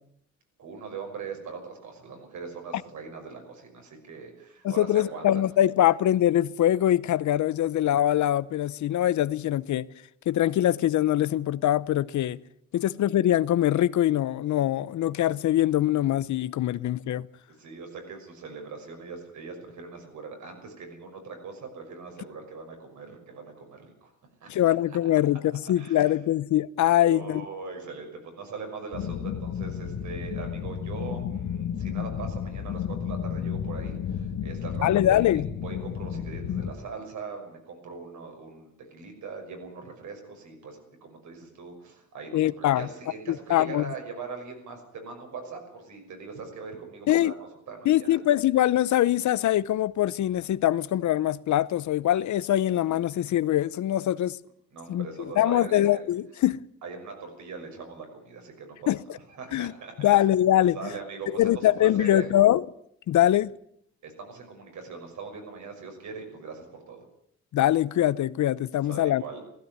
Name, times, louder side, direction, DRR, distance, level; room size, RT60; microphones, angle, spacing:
voice 1, 0.6-5.4 17.6-24.1 24.4-24.7 25.5-26.1 27.0-47.3 47.7-48.2 54.7-56.0 56.8-60.2 60.7-62.3 64.0-67.0 68.8-69.4, right 5 dB, 75° right, 6.1 m, -41 dB
voice 2, 4.6-9.9 10.3-12.4 12.7-17.3 24.5-27.4 34.8-35.5 42.3-42.9 43.3-43.9 47.1-47.3 47.9-54.4 54.9-56.6 58.9-59.0 59.5-59.7 60.0-60.8 61.3-62.6 63.1-63.5 67.5-69.2, left 12 dB, 75° left, 0.8 m, -23 dB
sound 1, 28.9-36.7, left 8 dB, 90° left, 1.9 m, -32 dB
17.5 x 15.5 x 9.4 m
wide cardioid pair, 175°, 30 cm